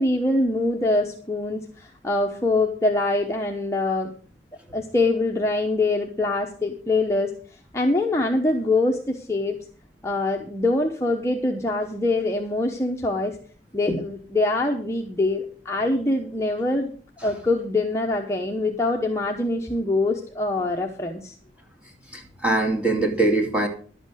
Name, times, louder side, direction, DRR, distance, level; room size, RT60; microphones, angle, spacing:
voice 1, 0.0-4.1 4.7-7.3 7.7-9.6 10.0-13.4 13.7-16.9 17.2-21.3, left 2 dB, 15° left, 0 dB, 1.0 m, -24 dB
voice 2, 22.1-23.7, right 2 dB, 5° right, 1 dB, 2.4 m, -23 dB
12.0 x 8.0 x 6.3 m, 0.44 s
head